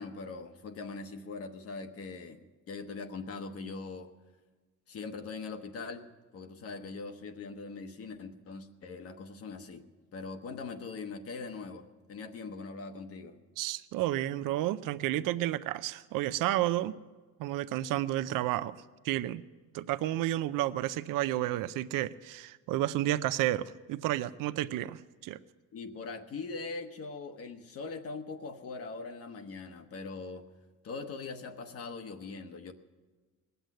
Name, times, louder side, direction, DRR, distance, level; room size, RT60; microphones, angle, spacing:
voice 1, 0.0-2.4 2.7-4.1 4.9-9.8 10.1-13.4 25.7-30.5 30.8-32.7, left 4 dB, 45° left, 7 dB, 1.0 m, -41 dB
voice 2, 13.6-17.0 17.4-18.8 19.0-19.4 19.7-25.4, right 14 dB, 80° right, 14 dB, 0.6 m, -31 dB
19.5 x 8.0 x 9.2 m, 1.3 s
cardioid pair, 160°, 32 cm